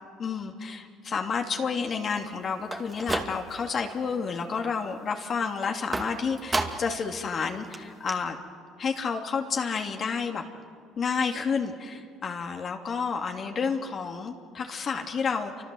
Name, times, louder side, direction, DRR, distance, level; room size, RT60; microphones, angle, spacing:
voice 1, 0.2-8.4 8.8-10.4 11.0-15.6, left 5 dB, 45° left, 3 dB, 2.6 m, -30 dB
sound 1, 2.6-3.8 4.1-4.6 5.9-7.0 7.4-7.5 7.7-7.8 8.1-8.2, right 2 dB, 20° right, 2.3 m, -32 dB
28.0 x 25.0 x 7.8 m, 2.1 s
supercardioid pair, 85°, 0 cm